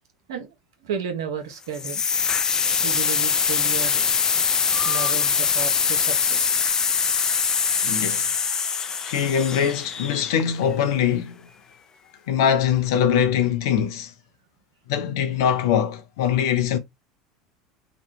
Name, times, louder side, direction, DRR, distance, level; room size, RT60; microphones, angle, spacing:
voice 1, 0.8-2.0 2.8-4.1 4.8-6.6, right 6 dB, 70° right, 0.9 m, -32 dB
sound 1, 1.7-10.6, left 6 dB, 25° left, 0.4 m, -23 dB
voice 2, 7.8-8.3 9.0-11.3 12.3-14.1 14.9-16.8, left 8 dB, 65° left, 0.6 m, -22 dB
3.0 x 2.3 x 3.4 m
figure-of-eight pair, 75°, 2 cm